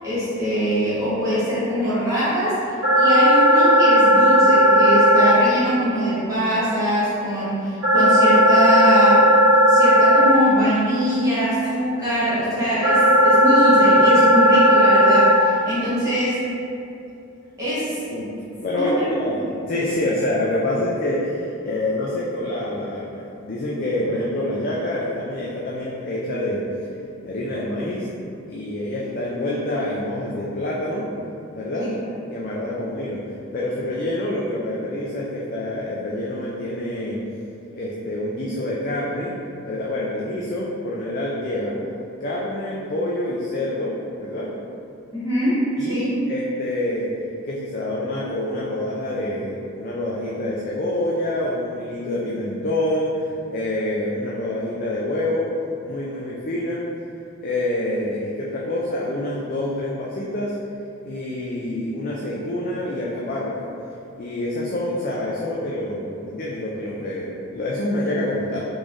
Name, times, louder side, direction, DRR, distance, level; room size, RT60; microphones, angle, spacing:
voice 1, 0.0-9.2 9.7-16.4 17.6-18.0 18.7-19.4 31.8-31.9 45.1-46.1, equal, 15° right, -13 dB, 1.1 m, -23 dB
sound 1, 2.8-5.3 7.8-10.3 12.8-15.3, equal, 85° right, 1.4 m, -14 dB
voice 2, 19.7-26.6 27.2-28.1 28.5-31.1 31.5-31.9 32.3-33.2 33.5-37.2 37.7-39.3 39.6-41.7 42.2-43.9 44.2-44.5 45.8-47.1 47.4-55.5 55.8-56.8 57.4-60.5 61.0-63.7 64.2-68.7, left 1 dB, 40° left, -5 dB, 0.3 m, -26 dB
3.8 x 3.1 x 2.5 m, 2.7 s
head